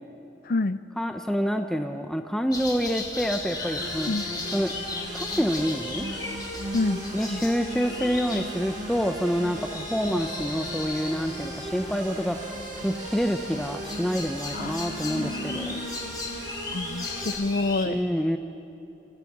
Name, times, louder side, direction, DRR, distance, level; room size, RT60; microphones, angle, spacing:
voice 1, 0.5-0.8 4.1-4.2 6.7-7.0 7.3-7.4 14.5-16.2 16.7-18.0, left 2 dB, 50° left, 13 dB, 0.6 m, -28 dB
voice 2, 1.0-4.1 4.5-4.7 5.1-6.1 7.1-12.4 12.7-15.8 17.9-18.4, equal, 5° left, 5 dB, 0.8 m, -27 dB
sound 1, 2.5-17.9, left 3 dB, 25° left, 2.8 m, -37 dB
sound 2, 3.6-17.3, right 1 dB, 45° right, 7.6 m, -37 dB
29.5 x 27.0 x 6.1 m, 2.9 s
head